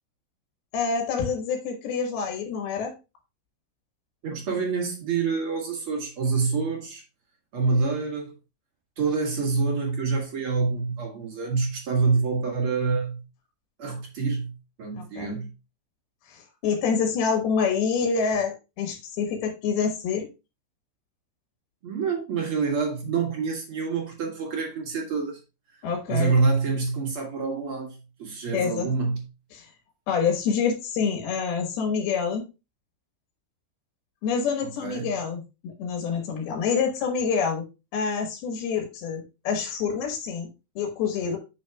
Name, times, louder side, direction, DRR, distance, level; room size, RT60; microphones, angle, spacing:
voice 1, 0.7-2.9 14.9-15.4 16.3-20.3 25.8-26.3 28.5-28.9 29.5-29.7 30.1-32.4 34.2-37.6 37.9-40.5 40.8-41.4, left 6 dB, 75° left, 3.2 m, -27 dB
voice 2, 4.2-7.0 7.5-8.3 9.0-13.2 13.8-14.5 14.8-15.5 21.8-25.4 25.7-29.2 34.6-35.2, right 4 dB, 45° right, 2.0 m, -27 dB
8.3 x 6.3 x 2.2 m
omnidirectional pair, 4.5 m